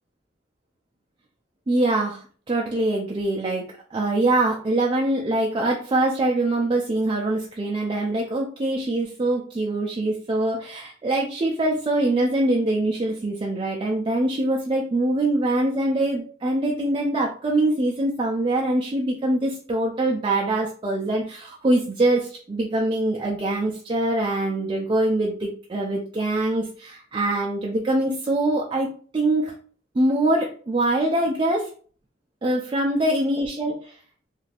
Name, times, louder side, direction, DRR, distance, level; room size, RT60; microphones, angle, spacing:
voice 1, 1.7-28.9 29.1-29.5 29.9-31.7 32.4-34.0, right 1 dB, 30° right, -1 dB, 0.4 m, -23 dB
2.5 x 2.4 x 3.3 m, 0.43 s
head